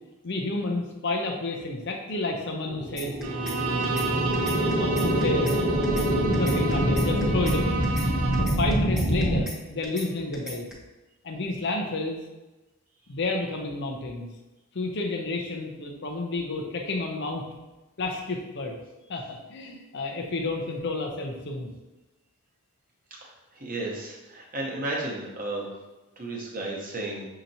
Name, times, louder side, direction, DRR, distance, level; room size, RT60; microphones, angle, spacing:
voice 1, 0.2-3.1 4.7-5.5 6.0-7.8 8.4-10.7 11.2-12.2 13.1-14.3 14.7-17.4 18.0-18.8 19.1-21.7, left 2 dB, 50° left, 2 dB, 0.5 m, -30 dB
sound 1, 2.7-9.4, equal, 35° left, 1.0 m, -25 dB
sound 2, 3.0-3.6 3.8-4.1 4.3-5.6 5.8-6.1 6.3-7.6 7.8-8.1 8.3-9.6 9.8-10.1 10.3-10.7, equal, 5° right, 0.9 m, -38 dB
Bowed string instrument, 3.2-8.7, right 5 dB, 80° right, 0.4 m, -32 dB
voice 2, 23.2-25.7 26.2-27.3, right 2 dB, 40° right, -2 dB, 0.9 m, -33 dB
6.4 x 2.8 x 2.8 m, 1.1 s
head